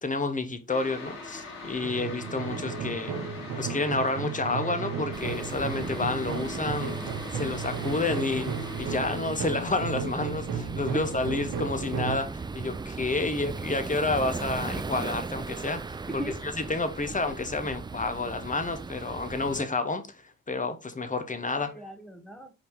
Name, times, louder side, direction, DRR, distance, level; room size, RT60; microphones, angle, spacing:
voice 1, 0.0-3.2 3.6-7.0 7.3-8.5 8.8-16.0 16.6-21.7, left 3 dB, 25° left, 1.0 m, -30 dB
sound 1, 0.7-9.1, left 3 dB, 60° left, 2.5 m, -42 dB
sound 2, 1.8-12.2, right 6 dB, 70° right, 0.9 m, -34 dB
voice 2, 3.1-3.4 7.0-7.5 10.7-11.4 16.1-16.4 17.2-17.3 21.6-22.5, right 1 dB, ahead, 1.1 m, -41 dB
sound 3, 5.1-19.6, right 4 dB, 15° right, 0.3 m, -38 dB
4.8 x 2.8 x 3.6 m
hypercardioid pair, 45°, 33 cm